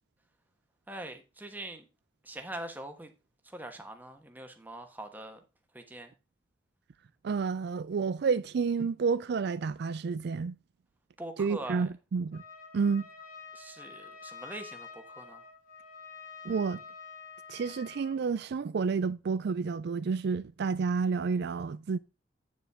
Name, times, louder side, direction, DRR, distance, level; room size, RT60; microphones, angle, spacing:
voice 1, 0.9-1.8 2.2-3.1 3.4-5.4 5.7-6.1 11.2-11.9 13.5-15.4, right 1 dB, 10° right, 1.3 m, -43 dB
voice 2, 7.2-10.6 11.4-12.4 12.7-13.1 16.4-16.8 17.5-22.0, right 5 dB, 65° right, 0.4 m, -30 dB
Trumpet, 12.3-18.2, left 5 dB, 45° left, 3.6 m, -48 dB
9.2 x 7.0 x 3.6 m
head